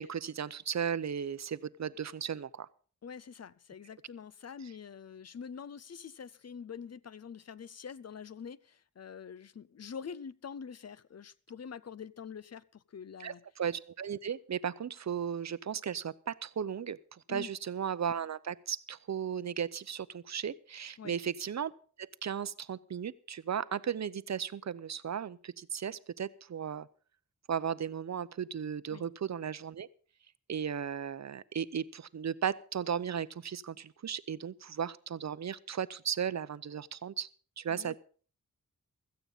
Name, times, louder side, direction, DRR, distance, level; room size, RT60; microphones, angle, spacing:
voice 1, 0.0-2.7 4.6-4.7 13.2-26.9 27.5-29.9 30.5-37.3 37.6-38.0, right 8 dB, 55° right, 0.7 m, -36 dB
voice 2, 3.0-13.4 17.3-17.5 21.0-21.1 28.9-29.1 37.7-38.0, left 6 dB, 50° left, 0.6 m, -45 dB
16.5 x 14.0 x 4.0 m
wide cardioid pair, 120°, 33 cm